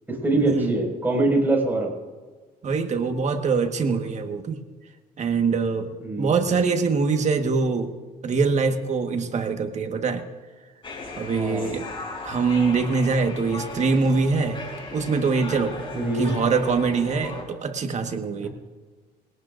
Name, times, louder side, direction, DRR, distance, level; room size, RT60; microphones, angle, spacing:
voice 1, 0.1-1.9 6.0-6.7 11.3-11.8 15.9-16.4 18.4-18.5, right 2 dB, 10° right, -1 dB, 5.7 m, -24 dB
voice 2, 2.6-4.6 5.2-5.9 6.2-7.9 8.2-10.2 11.2-11.8 12.2-14.6 14.9-15.7 16.1-18.5, right 4 dB, 45° right, 5 dB, 1.6 m, -23 dB
sound 1, 10.8-17.4, left 2 dB, 30° left, 4.9 m, -37 dB
23.0 x 18.0 x 2.6 m, 1.4 s
cardioid pair, 110°, 17 cm